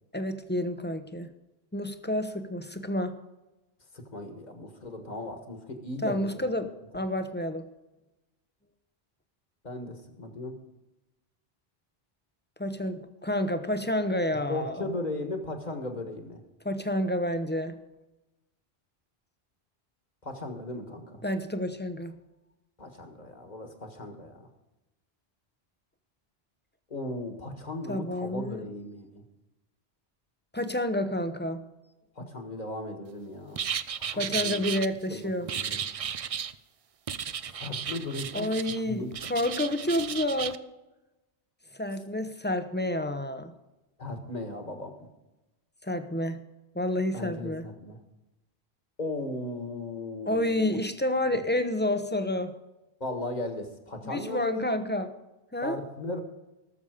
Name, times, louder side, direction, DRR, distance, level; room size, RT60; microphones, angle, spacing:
voice 1, 0.1-1.3 1.7-3.1 6.0-6.7 6.9-7.7 12.6-14.9 16.6-17.8 21.2-22.2 27.9-28.6 30.5-31.7 34.1-35.5 38.3-40.6 41.7-43.5 45.8-46.4 46.7-47.7 50.3-52.5 54.0-55.1 55.5-55.8, left 1 dB, 10° left, 9 dB, 0.7 m, -29 dB
voice 2, 3.9-6.5 9.6-10.6 14.5-16.4 20.2-21.2 22.8-24.5 26.9-29.2 32.2-33.6 34.1-34.6 35.1-35.8 37.5-38.5 38.9-39.1 44.0-45.1 47.1-48.0 49.0-50.8 51.3-51.4 53.0-54.9 55.6-56.2, left 2 dB, 45° left, 5 dB, 1.8 m, -37 dB
sound 1, 33.5-34.9 35.5-36.5 37.1-38.8 39.1-40.6, right 8 dB, 50° right, 0.4 m, -34 dB
18.5 x 7.1 x 5.1 m, 1.0 s
omnidirectional pair, 1.1 m